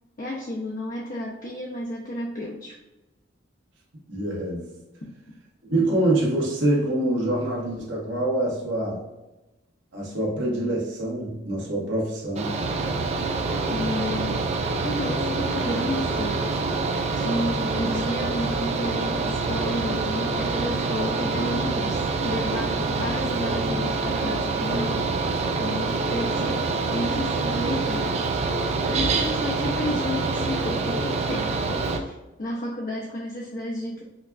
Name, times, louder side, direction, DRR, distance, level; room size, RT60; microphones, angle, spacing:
voice 1, 0.2-2.8 5.0-5.1 13.7-14.4 14.8-16.4 17.1-25.3 25.6-26.6 26.9-28.4 28.9-34.0, left 1 dB, 45° left, -3 dB, 0.5 m, -32 dB
voice 2, 4.1-4.7 5.7-9.0 9.9-12.6, right 1 dB, 80° right, -4 dB, 1.2 m, -25 dB
Mechanical fan, 12.3-32.0, right 3 dB, 35° right, 0.4 m, -26 dB
5.2 x 2.3 x 2.4 m, 1.0 s
head